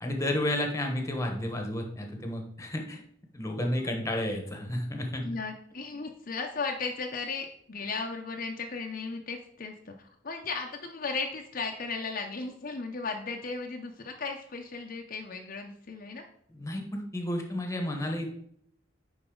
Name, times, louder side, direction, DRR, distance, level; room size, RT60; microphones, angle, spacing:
voice 1, 0.0-3.0 3.3-5.3 16.5-18.3, left 1 dB, 15° left, 3 dB, 1.0 m, -31 dB
voice 2, 5.2-16.2, left 4 dB, 50° left, 3 dB, 0.6 m, -36 dB
9.9 x 4.0 x 3.8 m, 0.69 s
head